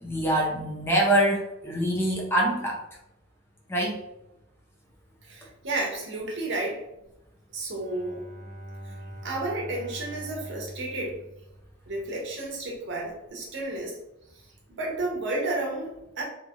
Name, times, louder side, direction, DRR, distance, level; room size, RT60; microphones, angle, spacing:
voice 1, 0.0-2.8 3.7-4.0, right 1 dB, 10° left, -2 dB, 0.6 m, -24 dB
voice 2, 5.2-6.8 7.5-8.2 8.8-8.9 9.2-11.2 11.9-14.0 14.7-16.2, right 2 dB, 60° right, -1 dB, 0.8 m, -32 dB
Bowed string instrument, 7.7-12.2, right 1 dB, 35° right, 0.5 m, -43 dB
2.8 x 2.8 x 2.4 m, 0.87 s
head